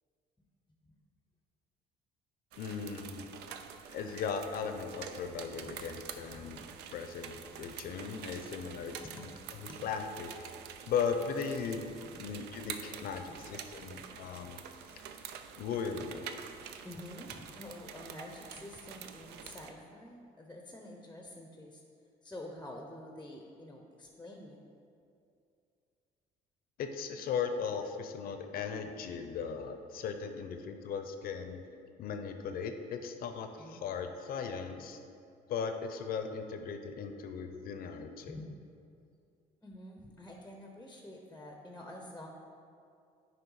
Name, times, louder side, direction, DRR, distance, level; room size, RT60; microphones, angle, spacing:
sound 1, 2.5-19.7, right 8 dB, 80° right, 0.5 m, -47 dB
voice 1, 2.6-3.3 3.9-6.6 6.9-10.3 10.9-11.9 12.2-14.6 15.6-16.3 26.8-31.6 32.0-35.0 35.5-38.4, left 6 dB, 60° left, 7 dB, 0.6 m, -37 dB
voice 2, 16.8-21.8 22.2-24.6 33.6-33.8 38.2-38.5 39.6-42.3, left 1 dB, 10° left, 1 dB, 0.6 m, -48 dB
9.3 x 3.1 x 4.7 m, 2.4 s
cardioid pair, 110°, 17 cm